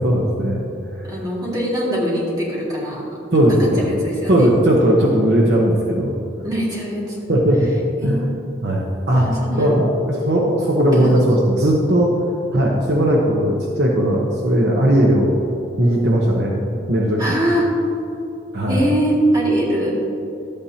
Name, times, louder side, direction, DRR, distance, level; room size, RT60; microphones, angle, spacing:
voice 1, 0.0-1.2 3.3-4.0 4.3-6.2 7.3-7.7 8.0-8.3 8.6-9.3 9.6-12.1 12.5-15.4 15.8-17.2 18.5-18.8, right 1 dB, 60° right, -2 dB, 1.0 m, -17 dB
voice 2, 1.0-3.0 3.6-4.5 6.4-7.3 8.0-8.3 9.1-9.7 10.9-11.1 17.2-17.7 18.7-19.9, right 1 dB, 20° right, -5 dB, 2.1 m, -22 dB
12.0 x 8.8 x 2.8 m, 2.8 s
head